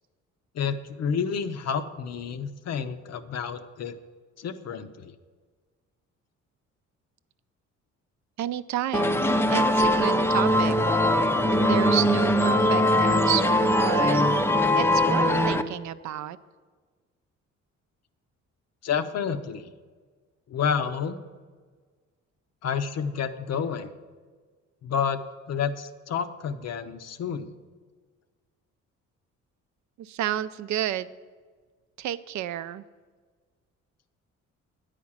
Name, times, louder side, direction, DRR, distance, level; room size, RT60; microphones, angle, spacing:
voice 1, 0.5-4.0 4.4-5.2 18.8-19.7 20.5-21.2 22.6-23.9 24.8-25.2 25.5-27.5, left 7 dB, 60° left, 9 dB, 0.7 m, -29 dB
voice 2, 8.4-10.7 11.5-14.2 14.7-16.4 30.0-31.1 32.0-32.8, right 12 dB, 70° right, 13 dB, 0.4 m, -31 dB
sound 1, 8.9-15.6, left 1 dB, 10° left, 0.4 m, -21 dB
9.5 x 5.0 x 7.2 m, 1.5 s
cardioid pair, 90°, 30 cm